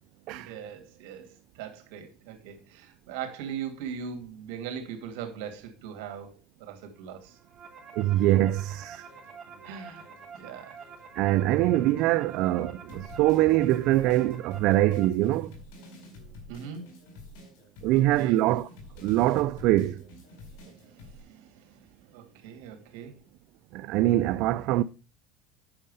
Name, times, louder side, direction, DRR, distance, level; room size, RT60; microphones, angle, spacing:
voice 1, 0.3-6.3 6.6-7.4 9.6-10.1 10.3-10.8 16.5-16.9 17.9-18.4 20.6-21.9 22.1-23.1, right 7 dB, 80° right, 2.5 m, -40 dB
sound 1, 7.2-15.1, right 6 dB, 35° right, 2.5 m, -47 dB
voice 2, 8.0-9.1 11.2-15.5 17.8-18.7 19.0-20.0 23.7-24.8, right 15 dB, 65° right, 0.4 m, -23 dB
sound 2, 8.5-11.1 11.6-21.2, left 1 dB, 85° left, 5.0 m, -49 dB
8.8 x 6.4 x 5.5 m
cardioid pair, 130°, 0 cm